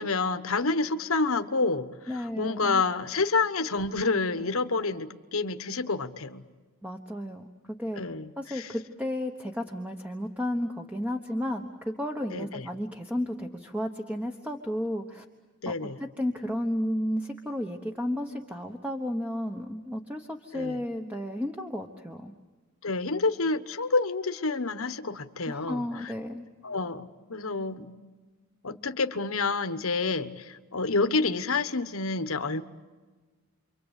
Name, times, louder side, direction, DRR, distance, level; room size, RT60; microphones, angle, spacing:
voice 1, 0.0-6.4 8.0-8.7 12.3-12.6 15.6-16.0 20.5-20.8 22.8-26.1 26.6-27.9 28.6-32.6, left 3 dB, 70° left, 9 dB, 1.3 m, -28 dB
voice 2, 2.1-2.8 6.8-8.0 8.4-15.2 15.7-15.8 16.0-22.3 25.5-26.4, left 1 dB, 5° right, 3 dB, 1.2 m, -33 dB
29.0 x 24.5 x 8.3 m, 1.3 s
head